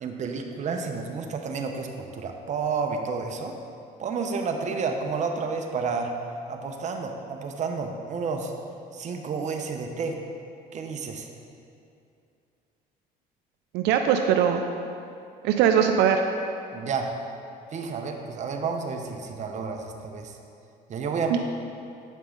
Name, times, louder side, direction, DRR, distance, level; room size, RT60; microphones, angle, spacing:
voice 1, 0.0-3.5 4.0-6.1 6.5-8.5 8.9-10.2 10.7-11.3 16.7-17.1 17.7-20.4 20.9-21.4, right 5 dB, 45° right, 3 dB, 0.8 m, -30 dB
voice 2, 13.7-14.6 15.4-16.2 21.3-21.4, right 8 dB, 85° right, 5 dB, 0.4 m, -21 dB
8.2 x 5.4 x 3.8 m, 2.6 s
cardioid pair, 110°, 17 cm